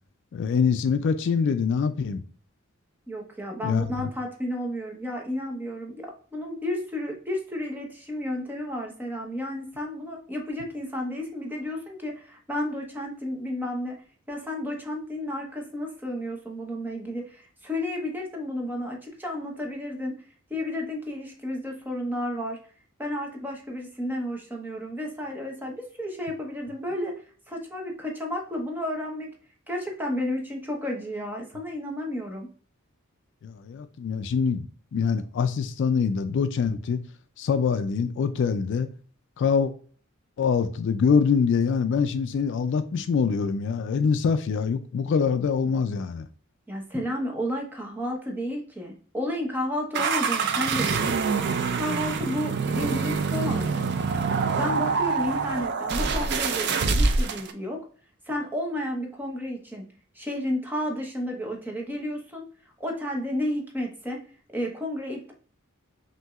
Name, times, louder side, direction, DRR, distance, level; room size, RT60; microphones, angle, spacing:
voice 1, 0.3-2.2 3.6-4.1 33.4-34.7 34.9-37.0 37.4-38.9 39.4-39.7 40.4-46.3, left 6 dB, 60° left, 0.3 m, -24 dB
voice 2, 3.1-14.0 14.3-20.1 20.5-22.6 23.0-27.1 27.5-29.3 29.7-32.5 46.7-51.1 51.7-54.0 54.6-57.8 58.3-59.8 60.2-62.4 62.8-64.2 64.5-65.3, left 1 dB, 10° right, 0.9 m, -32 dB
sound 1, 49.9-57.5, right 4 dB, 55° right, 0.5 m, -25 dB
5.9 x 2.7 x 2.3 m
head